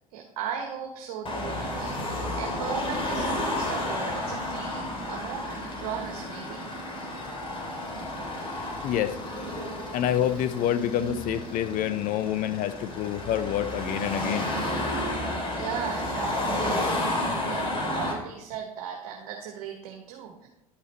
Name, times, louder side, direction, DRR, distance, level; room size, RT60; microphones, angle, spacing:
voice 1, 0.1-6.6 15.5-20.5, right 7 dB, 65° right, 1 dB, 1.3 m, -37 dB
Car passing by / Traffic noise roadway noise / Engine, 1.3-18.1, left 1 dB, 30° left, 2.8 m, -31 dB
voice 2, 8.8-9.2 9.9-14.5, left 11 dB, 45° left, 12 dB, 0.7 m, -27 dB
11.5 x 5.7 x 4.3 m, 0.88 s
hypercardioid pair, 75°, 19 cm